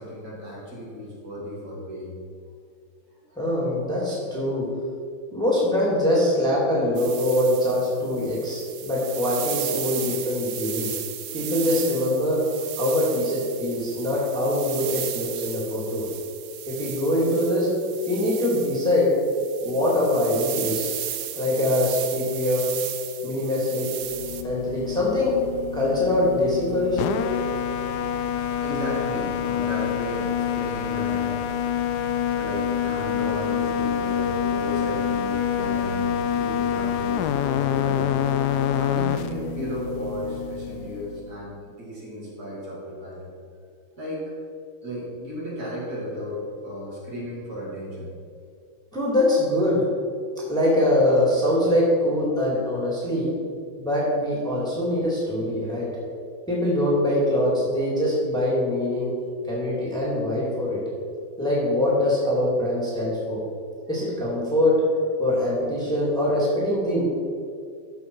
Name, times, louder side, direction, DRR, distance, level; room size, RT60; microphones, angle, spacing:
voice 1, 0.0-2.1 3.3-3.4 28.0-31.8 32.3-43.3 44.0-44.3 44.8-48.1 55.6-56.2 63.9-64.0, equal, 50° right, -6 dB, 3.0 m, -34 dB
voice 2, 3.4-4.7 5.3-10.9 11.3-12.4 12.8-16.1 16.7-17.7 18.1-19.1 19.6-20.9 21.4-22.6 23.2-23.9 24.4-25.4 25.7-27.1 48.9-49.8 50.5-53.3 53.8-55.9 56.5-59.1 59.5-60.8 61.4-63.4 63.9-64.8 65.2-67.0, left 1 dB, ahead, -6 dB, 2.3 m, -23 dB
sound 1, 7.0-24.4, right 11 dB, 85° right, 0.7 m, -35 dB
sound 2, 24.1-41.3, left 9 dB, 80° left, 0.9 m, -27 dB
13.5 x 5.7 x 4.7 m, 2.3 s
omnidirectional pair, 2.2 m